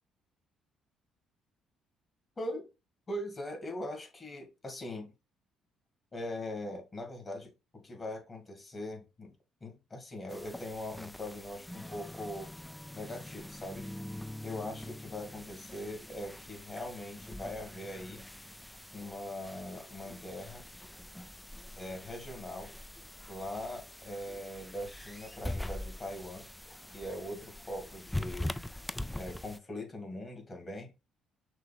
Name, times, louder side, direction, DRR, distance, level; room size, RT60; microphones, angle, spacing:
voice 1, 2.4-2.7 3.1-5.1 6.1-9.3 9.6-12.5 12.9-13.9 14.4-18.2 18.9-20.6 21.7-22.7 23.3-26.5 26.9-28.5 29.2-30.9, left 1 dB, 35° left, 2.1 m, -41 dB
sound 1, 10.3-29.6, left 1 dB, 10° left, 0.3 m, -43 dB
5.9 x 2.5 x 3.5 m
hypercardioid pair, 55°, 0 cm